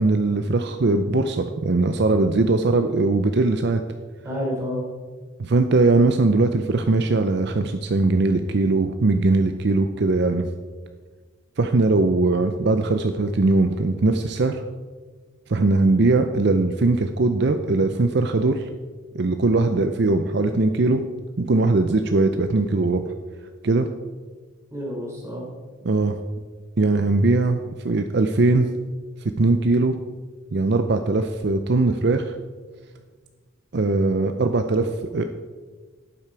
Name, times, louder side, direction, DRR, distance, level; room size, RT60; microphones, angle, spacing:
voice 1, 0.0-3.8 5.4-10.5 11.6-14.6 15.5-18.7 19.1-21.0 21.4-23.0 23.6-23.9 25.8-26.2 26.8-27.6 27.8-28.7 29.2-30.0 30.5-32.4 33.7-35.2, right 3 dB, 55° right, 8 dB, 0.5 m, -20 dB
voice 2, 4.2-4.8 24.7-25.5, equal, 15° right, -3 dB, 3.4 m, -29 dB
12.0 x 8.8 x 4.7 m, 1.4 s
head